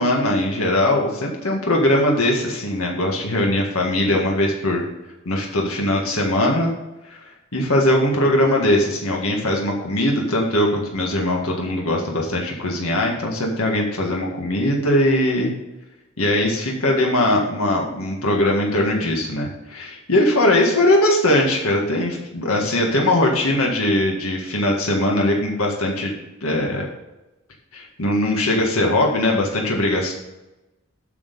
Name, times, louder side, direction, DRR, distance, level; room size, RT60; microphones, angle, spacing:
voice 1, 0.0-4.8 5.3-6.7 7.1-7.2 7.5-15.5 16.2-26.1 26.4-26.9 27.7-30.1, left 1 dB, 90° left, 0 dB, 1.8 m, -20 dB
8.5 x 6.4 x 5.3 m, 1.0 s
head